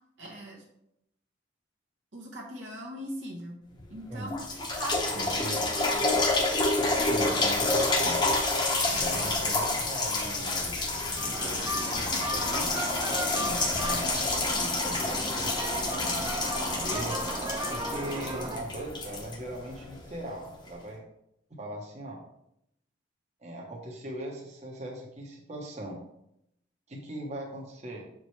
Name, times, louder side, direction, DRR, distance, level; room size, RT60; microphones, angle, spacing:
voice 1, 0.2-0.6 2.1-3.6 3.9-6.2 6.8-7.1 8.9-9.1 13.3-13.9 14.5-15.0 17.0-17.3, right 1 dB, 70° right, -2 dB, 1.1 m, -41 dB
sound 1, 3.8-3.9 4.3-20.0 20.7-20.8, left 2 dB, 25° left, 0.9 m, -28 dB
voice 2, 5.2-5.6 7.0-8.3 9.0-11.0 11.3-12.7 13.8-14.2 14.5-16.4 16.7-17.2 17.7-21.0 21.6-22.2 23.4-26.0 26.9-28.0, right 1 dB, 35° right, -1 dB, 1.0 m, -39 dB
sound 2, 11.2-18.6, right 1 dB, 20° right, 0.7 m, -35 dB
7.3 x 4.9 x 3.3 m, 0.78 s
head